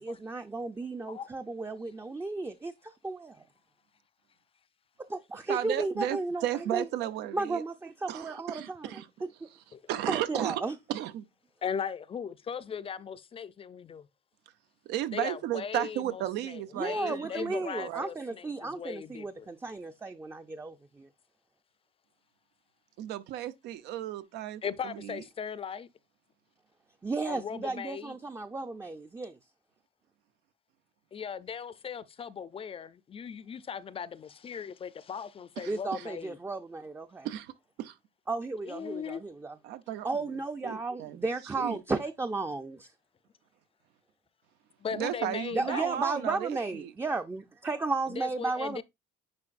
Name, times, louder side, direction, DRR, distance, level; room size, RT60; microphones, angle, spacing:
voice 1, 0.0-3.4 5.1-6.4 6.7-6.8 7.3-8.9 9.2-9.3 10.1-10.7 16.8-21.1 27.0-29.4 35.7-37.3 38.3-39.6 40.0-42.9 45.5-48.8, right 3 dB, 15° right, 0.5 m, -34 dB
voice 2, 5.5-7.6 8.1-9.1 9.9-10.6 10.9-11.3 14.9-18.1 23.0-25.2 35.6-36.1 37.2-37.5 37.8-38.0 39.6-41.3 41.5-41.8 44.9-46.9, right 12 dB, 85° right, 0.7 m, -34 dB
voice 3, 11.6-14.1 15.1-19.5 24.6-25.9 27.3-28.2 31.1-36.4 38.6-39.2 44.8-45.9 48.1-48.8, left 7 dB, 35° left, 0.5 m, -38 dB
9.7 x 4.5 x 2.5 m
cardioid pair, 110°, 17 cm